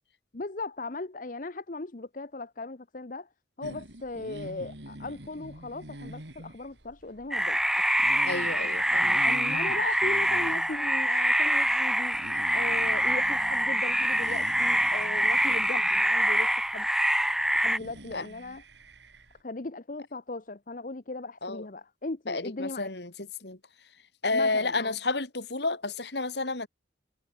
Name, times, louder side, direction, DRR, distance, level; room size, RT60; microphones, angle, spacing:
voice 1, 0.3-3.3 3.6-7.6 9.2-12.2 12.5-16.9 17.6-18.6 19.4-22.9 24.3-25.0, left 2 dB, 45° left, 0.9 m, -38 dB
sound 1, 3.6-19.4, right 1 dB, 70° right, 4.4 m, -46 dB
sound 2, 7.3-17.8, equal, ahead, 1.1 m, -25 dB
voice 2, 8.2-9.2 18.1-18.3 21.4-21.7 22.3-23.1 23.4-23.6 24.2-26.7, left 3 dB, 65° left, 3.0 m, -30 dB
head